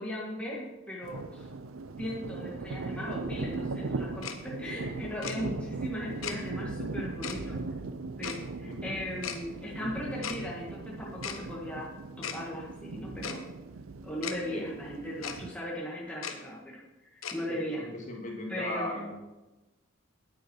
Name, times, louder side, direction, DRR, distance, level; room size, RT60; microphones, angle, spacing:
voice 1, 0.0-1.5 2.0-7.6 8.2-11.9 12.2-13.4 14.0-17.8 18.5-19.0, left 1 dB, 5° left, -5 dB, 1.6 m, -38 dB
sound 1, 1.0-15.5, right 3 dB, 85° right, 0.6 m, -39 dB
Tick-tock, 4.2-4.4 5.2-5.4 6.2-6.4 7.2-7.4 8.2-8.4 9.2-9.4 10.2-10.4 11.2-11.4 12.2-12.4 13.2-13.4 14.2-14.4 15.2-15.4 16.2-16.4 17.2-17.4, left 7 dB, 85° left, 1.0 m, -36 dB
voice 2, 8.6-9.0 14.5-14.7 17.5-19.1, left 1 dB, 35° left, 0 dB, 2.1 m, -38 dB
9.7 x 9.3 x 4.4 m, 1.1 s
head